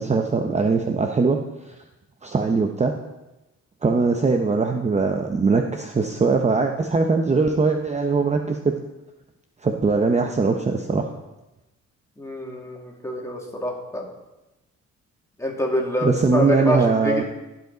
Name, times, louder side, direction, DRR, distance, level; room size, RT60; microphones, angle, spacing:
voice 1, 0.0-1.4 2.2-2.9 3.8-8.6 9.6-11.1 16.0-17.2, right 4 dB, 25° right, 4 dB, 0.7 m, -21 dB
voice 2, 12.2-14.1 15.4-17.2, left 1 dB, 10° left, -1 dB, 2.3 m, -26 dB
15.5 x 5.3 x 3.9 m, 1.0 s
cardioid pair, 90°, 30 cm